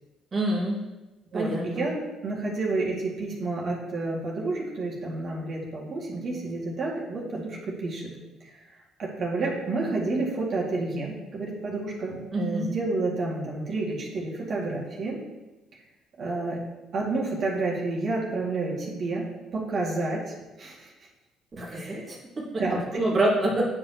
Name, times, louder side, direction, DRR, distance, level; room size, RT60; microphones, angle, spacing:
voice 1, 0.3-0.8 1.3-1.8 12.3-12.7 21.5-22.5 22.9-23.7, right 1 dB, 40° right, -4 dB, 1.9 m, -26 dB
voice 2, 1.3-8.1 8.4-8.7 9.0-15.2 16.2-16.6 16.9-19.3 19.5-20.2 20.6-20.9 21.7-22.1 22.6-22.8, right 3 dB, 55° right, -4 dB, 2.0 m, -30 dB
9.2 x 5.4 x 2.9 m, 1.1 s
hypercardioid pair, 50°, 0 cm